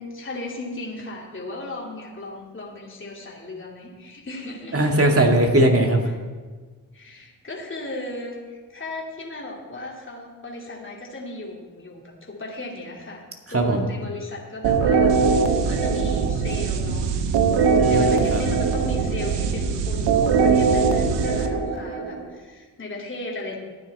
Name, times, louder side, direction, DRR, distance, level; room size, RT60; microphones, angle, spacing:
voice 1, 0.0-4.8 6.9-13.2 13.5-17.1 17.6-23.6, left 2 dB, 30° left, -3 dB, 2.9 m, -36 dB
voice 2, 4.7-6.1 13.5-13.8 17.8-18.4, right 1 dB, 35° right, 2 dB, 2.3 m, -19 dB
sound 1, 14.6-22.3, right 5 dB, 80° right, 1.0 m, -21 dB
14.5 x 9.3 x 4.3 m, 1.4 s
supercardioid pair, 45°, 42 cm